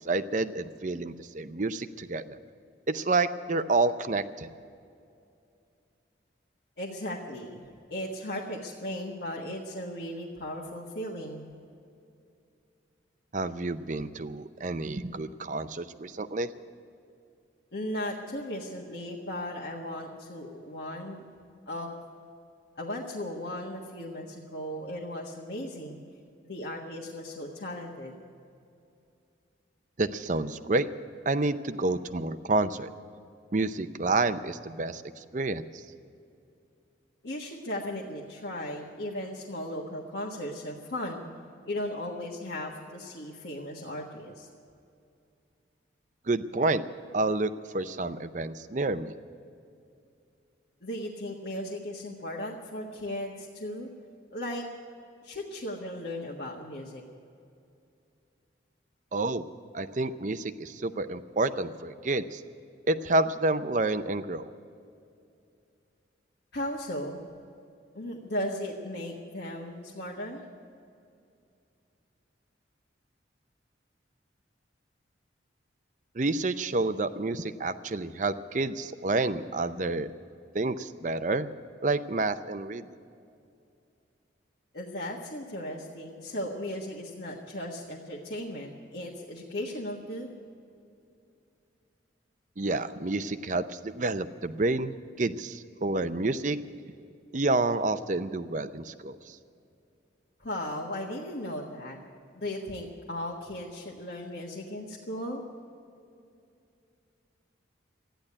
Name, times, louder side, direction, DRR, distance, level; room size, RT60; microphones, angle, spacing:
voice 1, 0.0-2.4 2.9-4.5 13.3-16.5 30.0-30.9 31.3-32.9 33.5-35.8 46.3-46.8 47.1-49.1 59.1-59.4 59.7-62.4 62.9-64.5 76.1-80.1 80.5-81.5 81.8-82.9 92.6-96.6 97.3-99.4, right 2 dB, 40° right, 12 dB, 0.6 m, -29 dB
voice 2, 6.8-7.6 7.9-11.5 17.7-21.2 21.7-22.0 22.8-26.0 26.4-28.1 37.2-41.3 41.6-44.5 50.8-53.9 54.3-54.6 55.2-57.0 66.5-67.2 67.9-70.4 84.7-90.3 100.4-102.0 102.3-105.4, left 1 dB, 60° left, -3 dB, 1.4 m, -36 dB
14.0 x 10.5 x 9.7 m, 2.5 s
head